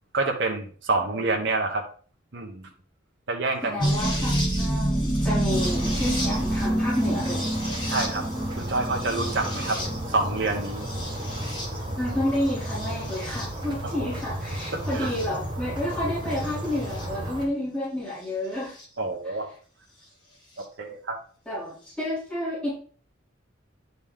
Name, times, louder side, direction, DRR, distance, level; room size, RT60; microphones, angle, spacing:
voice 1, 0.1-1.8 2.3-2.7 3.3-3.9 7.9-8.2 8.6-9.8 10.1-10.9 13.8-14.1 14.7-15.1 19.0-19.5 20.6-21.2, right 3 dB, 65° right, 2 dB, 1.1 m, -28 dB
voice 2, 1.0-1.6 3.6-7.5 9.4-9.9 12.0-18.7 21.4-22.7, left 1 dB, 5° left, -11 dB, 3.4 m, -30 dB
sound 1, 3.8-12.0 12.7-13.5 14.6-15.3 17.0-17.1 18.8-18.9, right 1 dB, 25° left, 1.5 m, -28 dB
sound 2, 5.5-17.4, right 1 dB, 25° right, 1.9 m, -33 dB
10.0 x 4.2 x 3.6 m, 0.43 s
head